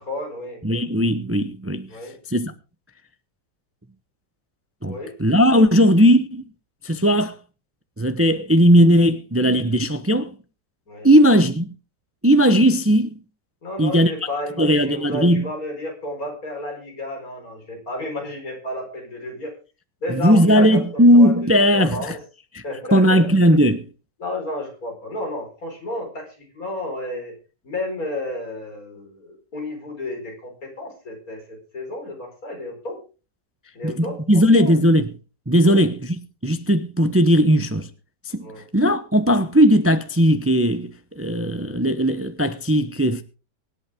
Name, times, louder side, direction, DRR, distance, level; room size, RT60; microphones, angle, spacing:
voice 1, 0.0-0.6 1.9-2.2 4.9-5.1 10.9-11.1 13.6-19.5 20.0-21.4 21.7-22.2 22.6-23.3 24.2-27.3 27.6-33.0 33.7-34.7 35.6-35.9 38.4-38.6, left 2 dB, 50° left, 5.1 m, -32 dB
voice 2, 0.6-1.9 2.3-2.5 4.8-6.5 6.8-7.4 8.0-10.3 11.0-11.7 12.2-13.2 13.8-14.1 14.6-15.5 20.1-22.0 22.5-22.6 22.9-23.9 33.8-35.1 35.5-37.9 38.3-38.5 38.7-43.2, equal, 15° right, 0.4 m, -17 dB
24.5 x 8.5 x 3.6 m
omnidirectional pair, 1.9 m